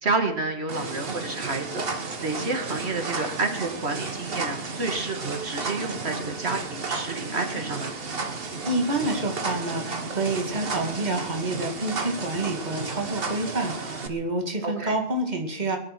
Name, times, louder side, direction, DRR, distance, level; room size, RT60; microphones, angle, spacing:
voice 1, 0.0-1.9 2.2-7.9 14.6-15.0, right 3 dB, 85° right, 4 dB, 2.4 m, -29 dB
sound 1, 0.7-14.1, right 4 dB, 65° right, 1.6 m, -33 dB
voice 2, 8.7-15.8, right 2 dB, 45° right, 3 dB, 2.3 m, -28 dB
22.0 x 10.5 x 5.9 m, 0.75 s
omnidirectional pair, 1.1 m